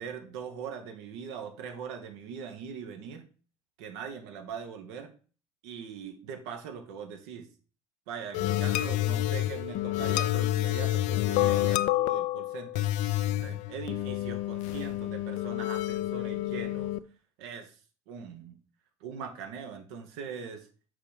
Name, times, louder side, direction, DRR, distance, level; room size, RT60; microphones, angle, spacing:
voice 1, 0.0-3.3 3.8-5.1 5.6-7.5 8.1-12.9 13.3-16.9 17.4-17.7 18.1-18.6 19.0-20.7, right 7 dB, 75° right, 6 dB, 1.1 m, -41 dB
sound 1, 8.3-17.0, left 15 dB, 60° left, 0.4 m, -29 dB
5.7 x 3.6 x 4.8 m, 0.37 s
hypercardioid pair, 75°, 14 cm